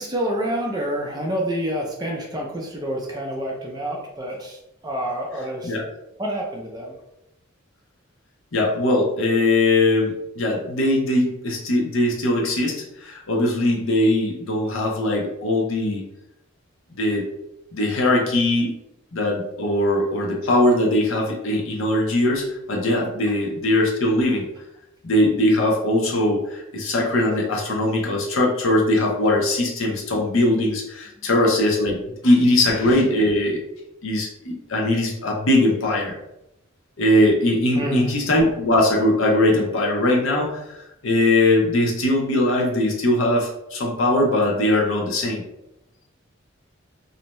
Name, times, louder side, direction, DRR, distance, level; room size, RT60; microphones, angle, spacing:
voice 1, 0.0-5.7 6.2-7.0 37.7-38.1, right 1 dB, 20° right, 0 dB, 0.4 m, -28 dB
voice 2, 8.5-16.1 17.0-17.3 17.7-18.8 19.1-24.5 25.0-33.6 34.0-36.1 37.0-45.4, left 1 dB, 80° left, 0 dB, 0.7 m, -20 dB
2.6 x 2.1 x 3.0 m, 0.84 s
head